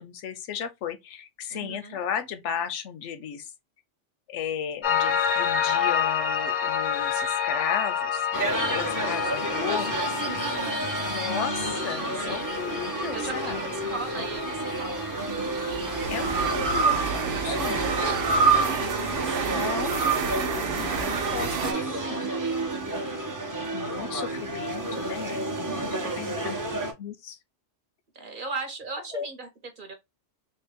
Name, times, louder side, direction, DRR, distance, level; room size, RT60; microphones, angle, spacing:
voice 1, 0.0-3.5 4.3-8.2 8.7-10.1 11.0-13.6 16.1-18.2 19.4-21.6 21.8-22.3 23.7-25.4 25.9-26.6 27.0-27.4 29.1-29.3, left 8 dB, 85° left, 0.9 m, -35 dB
voice 2, 1.5-2.0 8.5-8.9 10.4-10.9 12.1-12.5 13.1-15.0 17.2-18.2 19.2-19.7 21.1-22.7 26.0-26.3 28.1-29.9, right 3 dB, 50° right, 1.0 m, -39 dB
Piano, 4.8-16.1, left 7 dB, 65° left, 0.4 m, -29 dB
sound 1, 8.3-26.9, right 2 dB, 20° right, 0.6 m, -31 dB
sound 2, 10.8-12.3 14.2-21.7, right 5 dB, 85° right, 1.0 m, -27 dB
3.6 x 2.2 x 3.4 m
omnidirectional pair, 1.2 m